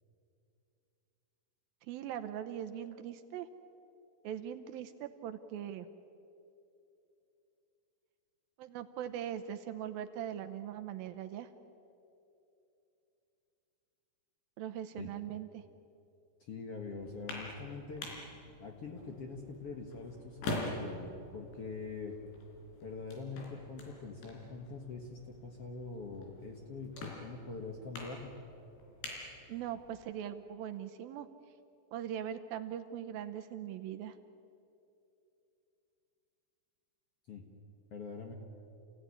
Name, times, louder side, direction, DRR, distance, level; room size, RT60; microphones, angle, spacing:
voice 1, 1.9-3.5 4.2-5.9 8.6-11.5 14.6-15.6 29.5-31.3 31.9-34.2, right 10 dB, 75° right, 8 dB, 2.3 m, -41 dB
voice 2, 16.5-18.0 18.6-22.1 22.8-28.3 37.3-37.4 37.9-38.3, left 4 dB, 55° left, 2 dB, 1.8 m, -44 dB
sound 1, 17.0-30.1, left 2 dB, 85° left, 5.9 m, -46 dB
29.0 x 16.5 x 9.9 m, 2.8 s
omnidirectional pair, 4.8 m